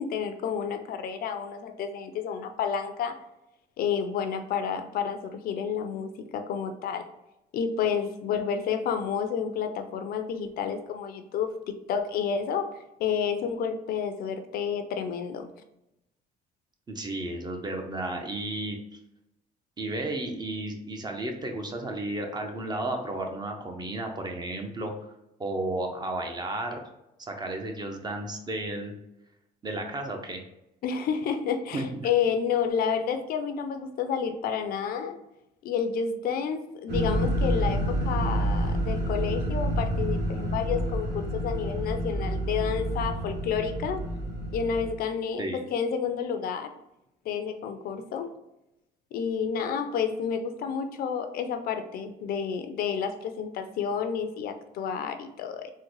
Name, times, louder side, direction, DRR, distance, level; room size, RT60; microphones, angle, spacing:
voice 1, 0.0-3.2 3.8-7.1 7.5-12.7 13.0-15.5 30.8-35.2 35.6-44.0 44.5-45.5 45.7-46.7 47.3-48.3 49.1-55.7, left 7 dB, 60° left, 7 dB, 0.4 m, -30 dB
voice 2, 16.9-18.8 19.8-24.9 25.4-26.8 27.2-28.9 29.6-30.4 31.7-32.1 45.4-45.6, right 2 dB, 25° right, 4 dB, 0.6 m, -33 dB
sound 1, 36.9-44.9, right 1 dB, 80° right, 1.1 m, -28 dB
3.7 x 2.1 x 3.0 m, 0.87 s
cardioid pair, 110°, 17 cm